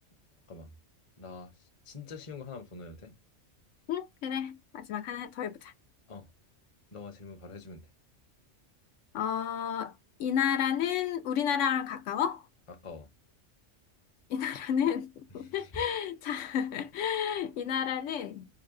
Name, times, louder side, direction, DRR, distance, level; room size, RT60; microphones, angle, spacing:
voice 1, 1.2-3.1 6.1-6.3 6.9-7.9 12.8-13.1 15.4-15.7, left 4 dB, 30° left, 0.7 m, -45 dB
voice 2, 3.9-5.7 9.1-9.9 10.2-12.5 14.3-18.5, left 8 dB, 90° left, 1.0 m, -31 dB
3.9 x 2.2 x 3.6 m
omnidirectional pair, 1.2 m